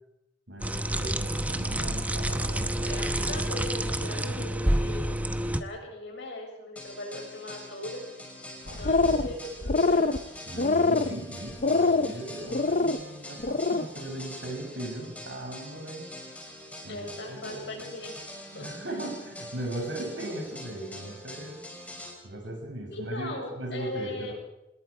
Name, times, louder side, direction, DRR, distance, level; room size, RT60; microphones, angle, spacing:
voice 1, 0.5-3.5 4.2-4.5 8.7-9.2 10.5-16.1 16.8-17.8 18.5-21.6 22.2-24.3, right 1 dB, 85° right, 1 dB, 7.4 m, -38 dB
sound 1, 0.6-5.6, right 1 dB, 10° right, 1.0 m, -28 dB
voice 2, 2.8-8.1 8.8-10.1 16.9-18.2 18.5-18.7 22.9-24.3, left 1 dB, 70° left, 1 dB, 7.0 m, -39 dB
sound 2, 6.8-22.1, left 1 dB, 10° left, 5.9 m, -44 dB
sound 3, 8.7-9.3 9.6-10.2 10.6-11.1 11.6-12.1 12.5-13.0 13.4-13.8, left 3 dB, 45° left, 0.8 m, -24 dB
26.0 x 20.5 x 5.0 m, 0.89 s
head